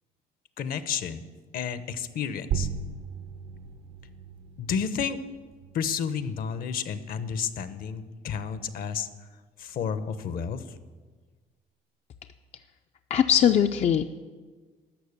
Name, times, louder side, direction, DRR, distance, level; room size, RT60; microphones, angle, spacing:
voice 1, 0.6-1.3 1.5-2.7 4.6-5.2 5.7-9.1 9.6-10.8, left 7 dB, 60° left, 13 dB, 0.8 m, -31 dB
sound 1, 2.5-7.6, right 7 dB, 85° right, 0.9 m, -37 dB
voice 2, 13.1-14.0, left 9 dB, 40° left, 8 dB, 0.4 m, -20 dB
12.0 x 6.4 x 8.4 m, 1.4 s
cardioid pair, 110°, 17 cm